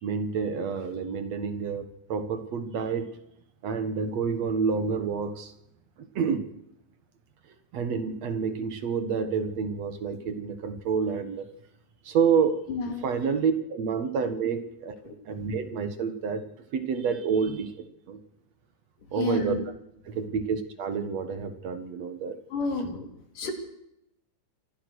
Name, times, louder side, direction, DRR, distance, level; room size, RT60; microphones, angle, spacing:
voice 1, 0.0-3.1 3.6-5.5 6.0-6.4 7.7-11.5 12.0-12.7 13.0-15.0 15.3-16.4 16.7-18.2 19.1-19.6 20.1-22.4, right 6 dB, 60° right, 10 dB, 2.5 m, -28 dB
voice 2, 12.7-13.1 15.0-15.2 19.2-19.6 22.5-23.1 23.3-23.5, left 3 dB, 75° left, 4 dB, 5.1 m, -30 dB
25.5 x 16.0 x 6.5 m, 0.80 s
omnidirectional pair, 3.7 m